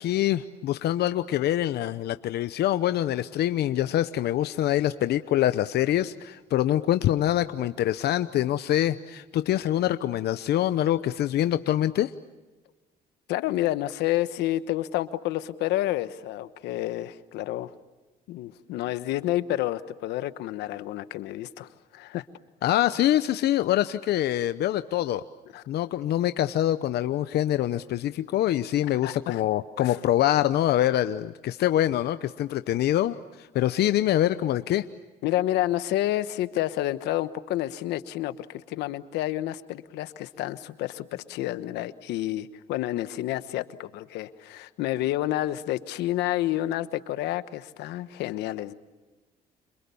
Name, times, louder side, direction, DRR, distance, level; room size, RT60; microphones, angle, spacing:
voice 1, 0.0-12.1 22.6-25.2 25.7-34.8, left 12 dB, 75° left, 11 dB, 0.9 m, -25 dB
voice 2, 13.3-17.7 18.3-22.2 25.5-25.6 29.0-29.4 29.8-30.0 35.2-48.7, left 14 dB, 90° left, 13 dB, 1.2 m, -29 dB
30.0 x 27.5 x 7.0 m, 1.2 s
cardioid pair, 85°, 17 cm